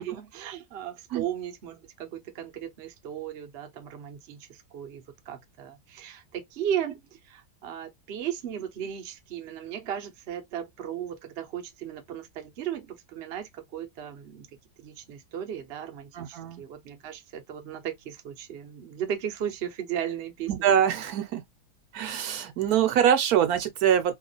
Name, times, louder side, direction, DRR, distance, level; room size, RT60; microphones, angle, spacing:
voice 1, 0.0-14.5 14.8-20.7, right 9 dB, 55° right, 0.7 m, -36 dB
voice 2, 16.1-16.6 20.5-21.4 21.9-24.2, right 9 dB, 70° right, 1.1 m, -24 dB
2.9 x 2.2 x 3.8 m
omnidirectional pair, 1.7 m